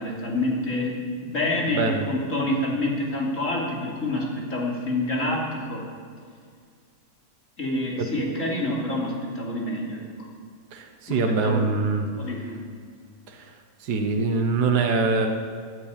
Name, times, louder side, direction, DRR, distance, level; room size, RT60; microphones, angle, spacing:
voice 1, 0.0-5.8 7.6-10.0 11.1-11.6 12.2-12.6, left 1 dB, 45° left, -2 dB, 3.2 m, -27 dB
voice 2, 1.7-2.0 8.0-8.1 10.7-12.1 13.3-13.5 13.8-15.3, right 4 dB, 65° right, 3 dB, 1.6 m, -24 dB
14.5 x 9.8 x 8.8 m, 2.1 s
omnidirectional pair, 1.9 m